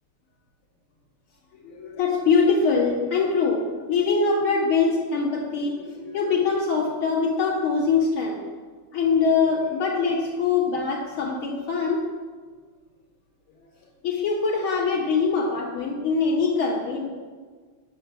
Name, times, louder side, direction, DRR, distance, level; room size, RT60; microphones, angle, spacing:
voice 1, 1.6-3.6 3.9-8.4 8.9-12.0 14.0-17.1, left 4 dB, 80° left, -6 dB, 2.9 m, -23 dB
10.5 x 5.1 x 7.1 m, 1.5 s
omnidirectional pair, 2.4 m